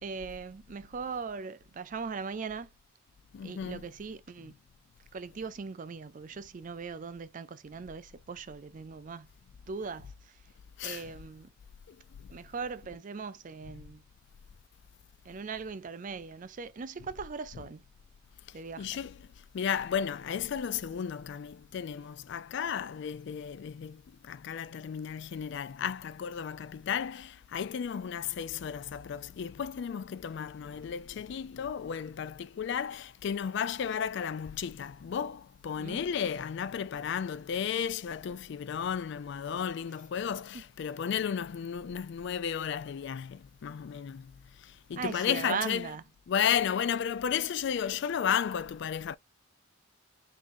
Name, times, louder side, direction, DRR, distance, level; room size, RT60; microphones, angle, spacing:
voice 1, 0.0-2.7 3.4-4.6 5.1-9.3 9.7-10.4 10.8-11.5 12.3-14.0 15.2-17.8 18.5-18.9 35.8-36.0 40.5-40.6 45.0-46.0, right 5 dB, 40° right, 0.4 m, -39 dB
voice 2, 3.3-3.8 10.8-11.1 11.9-12.0 18.8-19.2 19.5-44.3 44.6-45.9 46.3-49.2, left 8 dB, 60° left, 0.3 m, -33 dB
3.8 x 3.6 x 2.6 m
head